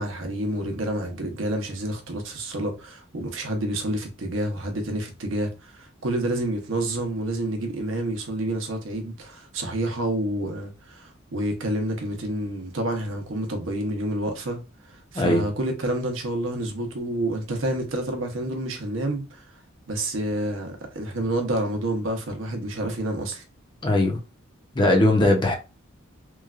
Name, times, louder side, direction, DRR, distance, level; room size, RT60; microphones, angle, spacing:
voice 1, 0.0-14.6 14.9-19.4 19.9-23.4, right 1 dB, 65° right, 0.7 m, -29 dB
voice 2, 23.8-24.2 24.7-25.6, left 1 dB, 20° left, 0.6 m, -19 dB
3.0 x 2.3 x 2.3 m
head